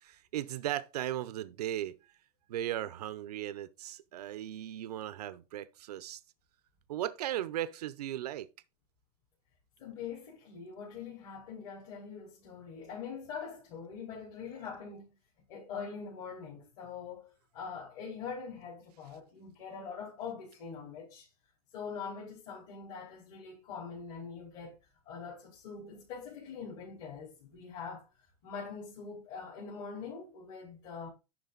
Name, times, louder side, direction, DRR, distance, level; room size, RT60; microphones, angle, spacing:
voice 1, 0.0-2.0 2.5-6.2 6.9-8.5, right 12 dB, 85° right, 0.7 m, -37 dB
voice 2, 9.8-15.2 15.5-21.3 21.7-24.7 25.0-28.1 28.4-31.1, left 6 dB, 50° left, 4.4 m, -43 dB
11.0 x 4.0 x 3.9 m
supercardioid pair, 145°, 20 cm